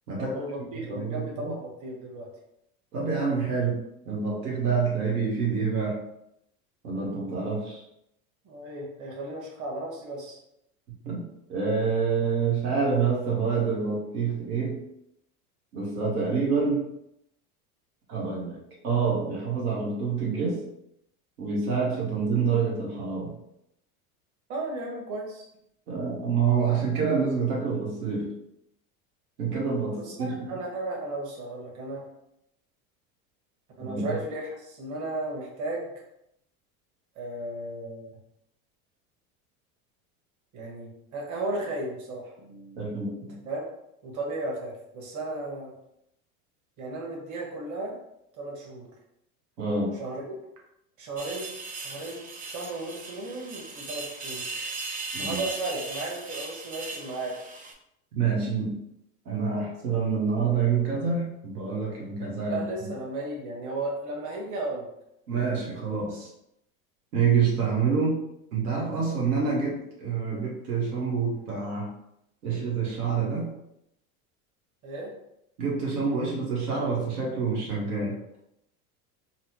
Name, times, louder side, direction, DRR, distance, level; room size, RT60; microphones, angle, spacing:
voice 1, 0.2-2.3 8.4-10.4 24.5-25.4 29.9-32.0 33.8-35.9 37.1-38.2 40.5-43.0 43.4-43.6 44.0-45.7 46.8-48.0 48.4-48.9 49.9-50.2 51.0-51.5 51.7-54.5 55.2-57.4 62.4-64.9 74.8-75.1, right 2 dB, 40° right, -2 dB, 1.3 m, -35 dB
voice 2, 0.9-1.5 2.9-3.8 4.1-6.0 6.8-7.8 11.0-14.8 15.7-16.9 18.1-18.6 18.8-20.6 21.4-23.3 25.9-28.3 29.4-30.4 33.8-34.2 42.8-43.3 49.6-50.0 55.1-55.4 58.1-58.8 59.3-62.6 65.3-66.3 67.1-68.2 68.5-71.9 72.4-73.5 75.6-78.2, right 5 dB, 90° right, -4 dB, 1.1 m, -27 dB
sound 1, 51.2-57.7, right 3 dB, 20° right, 0.5 m, -37 dB
4.0 x 2.0 x 2.9 m, 0.79 s
hypercardioid pair, 95°, 44 cm